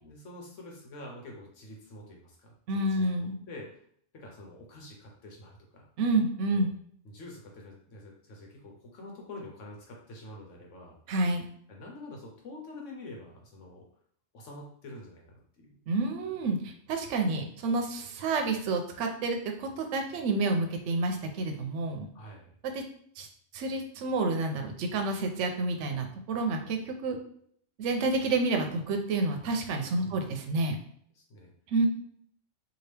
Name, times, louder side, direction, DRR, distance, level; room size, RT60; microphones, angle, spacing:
voice 1, 0.0-3.8 4.1-5.9 6.5-6.7 7.0-11.0 11.7-13.9 14.3-15.8 22.1-22.5 29.9-30.2 31.1-31.5, left 2 dB, 80° left, -1 dB, 1.2 m, -47 dB
voice 2, 2.7-3.3 6.0-6.7 11.1-11.4 15.9-22.1 22.7-22.8 23.2-23.3 23.5-27.2 27.8-30.8 31.7-31.9, right 2 dB, 75° right, 4 dB, 0.9 m, -29 dB
2.8 x 2.6 x 3.2 m, 0.63 s
omnidirectional pair, 1.3 m